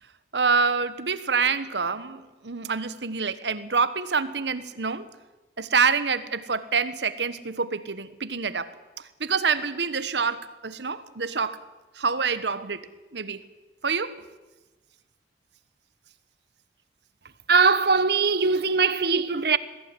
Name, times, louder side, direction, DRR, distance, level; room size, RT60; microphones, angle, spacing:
voice 1, 0.3-5.1 5.6-8.7 9.2-11.6 12.0-12.9 13.1-13.4 13.8-14.2, right 5 dB, 80° right, 1.3 m, -26 dB
voice 2, 17.5-19.6, right 4 dB, 60° right, 0.9 m, -21 dB
21.0 x 15.0 x 9.8 m
head